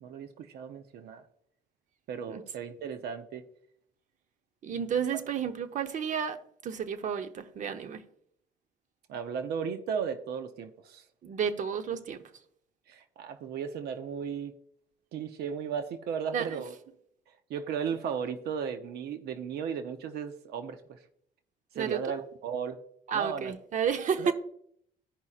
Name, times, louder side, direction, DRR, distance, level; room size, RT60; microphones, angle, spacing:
voice 1, 0.0-1.2 2.1-3.4 5.1-5.2 9.1-11.0 12.9-14.5 15.1-16.7 17.5-21.0 21.7-22.8 23.1-23.5 24.2-24.3, right 7 dB, 70° right, 0.7 m, -35 dB
voice 2, 4.6-6.4 6.6-8.0 11.2-12.2 16.3-16.6 21.7-22.0 23.1-24.3, right 7 dB, 50° right, 0.9 m, -31 dB
15.0 x 5.4 x 2.4 m
cardioid pair, 110°, 17 cm